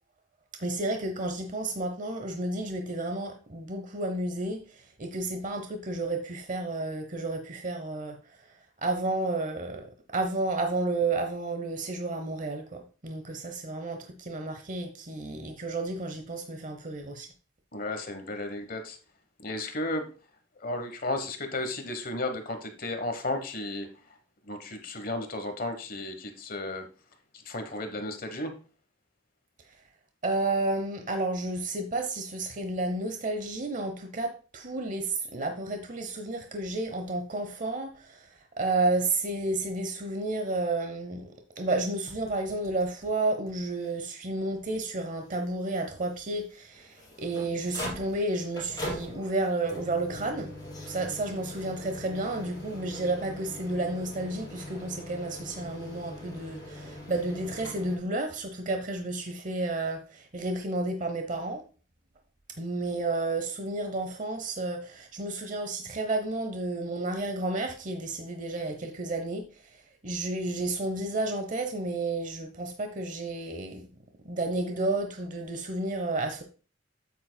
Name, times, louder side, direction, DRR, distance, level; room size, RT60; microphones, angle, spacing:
voice 1, 0.6-17.3 29.7-29.8 30.2-50.5 50.9-61.6 62.6-73.9 74.2-76.4, right 2 dB, 40° right, 0.9 m, -31 dB
voice 2, 17.7-19.0 19.4-20.1 20.6-23.9 24.4-26.9 27.3-28.5, left 2 dB, 50° left, 1.1 m, -34 dB
sound 1, 42.1-43.1 43.5-43.6 43.8-43.9 44.6-44.7 46.7-58.0, left 1 dB, 20° left, 3.4 m, -42 dB
8.6 x 8.5 x 2.2 m
head